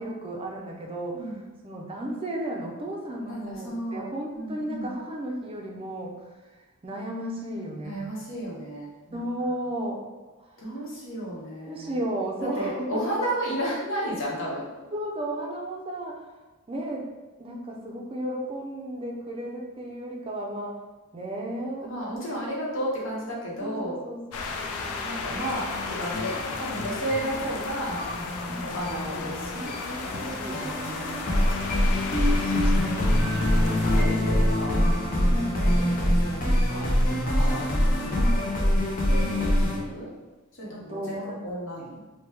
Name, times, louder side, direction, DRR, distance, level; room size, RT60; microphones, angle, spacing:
voice 1, 0.0-1.3 1.6-6.3 6.8-8.1 9.1-10.0 10.4-10.7 11.6-13.1 14.9-16.2 16.7-17.1 17.4-20.8 21.1-21.9 23.6-25.2 27.2-27.4 28.5-28.8 30.1-31.3 32.8-34.3 35.3-35.6 38.1-38.7 40.6-41.4, right 1 dB, 25° right, 0 dB, 0.5 m, -34 dB
voice 2, 3.3-4.9 7.8-9.2 10.6-11.9 12.6-14.6 21.8-24.0 25.0-28.0 28.6-30.4 30.9-31.1 32.7-34.7 35.5-37.0 37.2-37.6 39.1-40.1 40.6-42.0, right 1 dB, 65° left, -5 dB, 1.0 m, -33 dB
sound 1, 24.3-34.0, left 4 dB, 90° left, 0.4 m, -35 dB
sound 2, 25.3-39.8, left 1 dB, 40° left, 0.6 m, -25 dB
3.0 x 2.1 x 3.3 m, 1.2 s
head